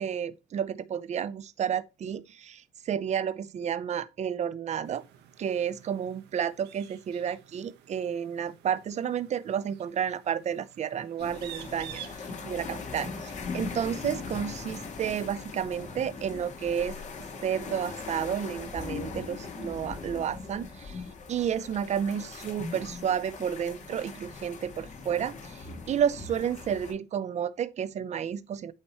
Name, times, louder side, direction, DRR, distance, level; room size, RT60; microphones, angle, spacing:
voice 1, 0.0-5.0 5.4-12.0 12.4-17.0 17.4-21.0 21.3-28.7, right 8 dB, 40° right, 0.6 m, -31 dB
sound 1, 4.8-17.2, right 10 dB, 85° right, 1.1 m, -52 dB
sound 2, 11.2-26.9, left 4 dB, 45° left, 1.9 m, -40 dB
8.8 x 3.0 x 4.3 m
cardioid pair, 110°, 17 cm